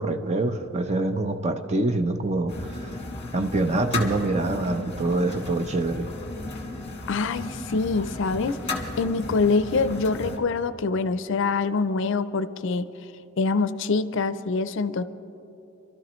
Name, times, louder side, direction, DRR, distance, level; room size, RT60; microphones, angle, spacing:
voice 1, 0.0-2.5 2.8-3.0 3.3-6.1, right 2 dB, 30° right, 7 dB, 0.6 m, -25 dB
sound 1, 2.5-10.4, left 2 dB, 30° left, 1.5 m, -35 dB
voice 2, 7.1-8.6 9.0-12.9 13.4-15.0, left 4 dB, 60° left, 13 dB, 0.4 m, -25 dB
26.5 x 13.0 x 3.1 m, 2.9 s
head